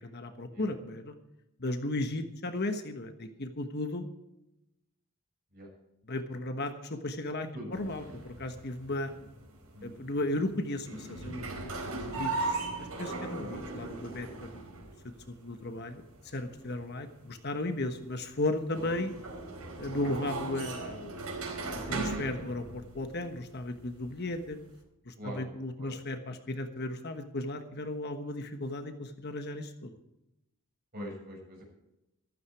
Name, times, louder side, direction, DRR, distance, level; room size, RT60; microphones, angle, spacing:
voice 1, 0.0-1.1 1.6-4.1 6.1-9.1 9.8-14.7 15.0-19.1 19.8-21.2 21.7-24.6 25.0-30.0, left 2 dB, 50° left, 7 dB, 1.3 m, -35 dB
voice 2, 7.5-8.1 9.7-10.0 13.3-13.6 16.7-16.8 25.2-25.4 25.8-25.9 30.9-31.7, equal, 40° right, -1 dB, 6.9 m, -44 dB
sound 1, 7.7-24.8, right 3 dB, 80° right, 4.5 m, -39 dB
14.5 x 13.0 x 4.7 m, 0.90 s
head